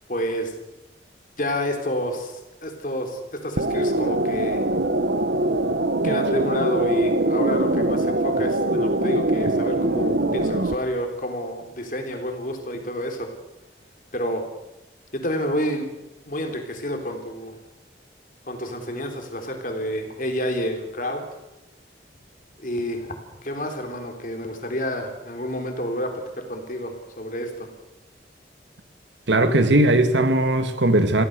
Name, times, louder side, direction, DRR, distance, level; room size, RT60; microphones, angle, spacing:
voice 1, 0.1-0.5 1.4-4.6 6.0-13.3 14.1-14.4 15.1-15.9 16.3-17.6 18.5-21.2 22.6-23.2 23.4-27.7, equal, 45° left, 3.6 m, -29 dB
sound 1, 3.6-10.7, right 2 dB, 60° right, 1.1 m, -22 dB
voice 2, 29.3-31.2, right 1 dB, 80° right, 1.9 m, -18 dB
25.0 x 16.5 x 6.8 m
head